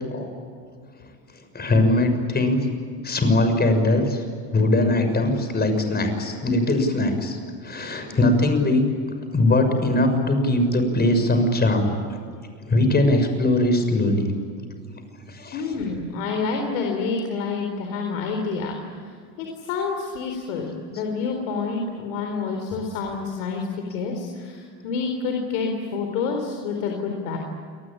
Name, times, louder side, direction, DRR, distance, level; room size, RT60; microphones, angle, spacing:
voice 1, 1.5-2.6 3.0-4.2 4.5-7.4 7.6-8.8 9.3-11.9 12.7-14.3 15.3-15.6, left 2 dB, 25° left, 7 dB, 6.5 m, -20 dB
voice 2, 15.5-19.1 19.4-27.4, left 4 dB, 85° left, 2 dB, 4.3 m, -28 dB
28.5 x 20.0 x 9.0 m, 2.2 s
supercardioid pair, 100°, 36 cm